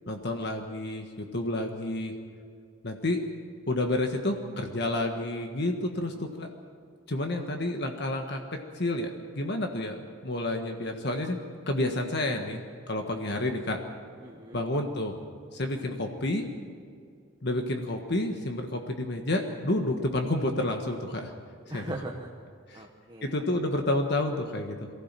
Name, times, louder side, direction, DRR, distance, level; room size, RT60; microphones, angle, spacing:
voice 1, 0.1-2.1 2.8-3.2 3.7-6.5 7.1-11.4 11.7-12.6 12.9-13.8 14.5-15.1 15.5-16.5 17.4-21.3 21.7-21.8 22.7-22.8 23.2-24.9, left 1 dB, 50° left, 4 dB, 1.5 m, -30 dB
voice 2, 7.3-8.1 14.2-14.6 21.7-22.3 22.7-23.4 23.7-23.8, right 2 dB, 20° right, 0 dB, 1.2 m, -41 dB
23.5 x 15.5 x 7.6 m, 2.2 s
head